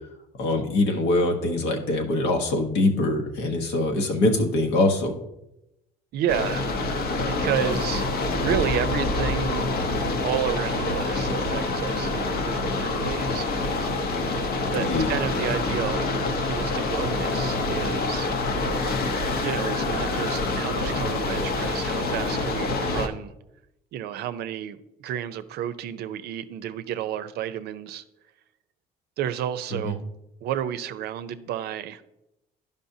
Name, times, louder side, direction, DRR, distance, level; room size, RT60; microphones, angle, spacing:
voice 1, 0.4-5.1 14.8-15.1 29.7-29.9, left 2 dB, 80° left, 1.2 m, -23 dB
voice 2, 6.1-6.6 7.3-8.1 8.4-9.7 10.2-14.5 14.7-16.1 16.4-18.3 19.4-23.3 23.9-28.0 29.2-30.0 30.4-32.0, right 10 dB, 75° right, 0.5 m, -31 dB
sound 1, 6.3-23.1, left 2 dB, 65° left, 1.0 m, -26 dB
11.5 x 5.3 x 2.7 m
cardioid pair, 110°, 17 cm